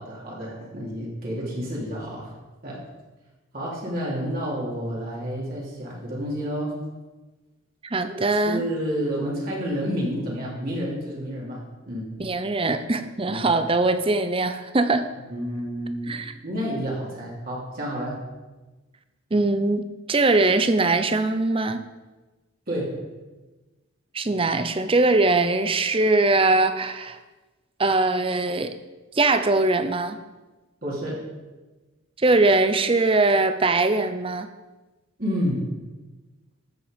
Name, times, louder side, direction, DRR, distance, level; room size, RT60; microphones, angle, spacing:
voice 1, 0.0-2.3 2.6-2.8 3.5-6.8 8.1-8.2 8.4-12.1 13.3-13.4 15.3-16.2 16.4-18.2 22.7-23.0 30.8-31.3 35.2-35.7, equal, 45° right, -5 dB, 3.1 m, -30 dB
voice 2, 7.8-8.6 12.2-15.1 16.1-16.3 19.3-21.8 24.1-27.2 27.8-28.8 29.1-30.2 32.2-34.5, right 2 dB, 25° right, 10 dB, 0.6 m, -21 dB
13.5 x 7.7 x 5.2 m, 1.2 s
head